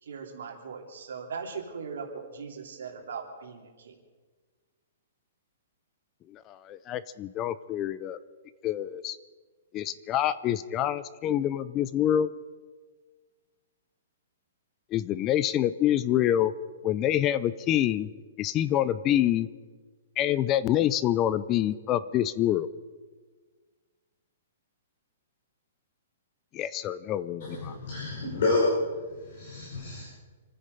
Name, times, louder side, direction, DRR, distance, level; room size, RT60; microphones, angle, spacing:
voice 1, 0.0-3.9, right 5 dB, 70° right, 1 dB, 3.1 m, -39 dB
voice 2, 6.3-8.2 8.6-9.2 9.7-12.3 14.9-16.5 16.8-18.1 18.4-19.5 20.2-22.7 26.5-27.7, left 11 dB, 20° left, 16 dB, 0.4 m, -26 dB
voice 3, 27.4-28.7 29.2-30.0, left 3 dB, 50° left, -5 dB, 5.0 m, -29 dB
27.5 x 9.8 x 5.4 m, 1.4 s
hypercardioid pair, 175°, 0 cm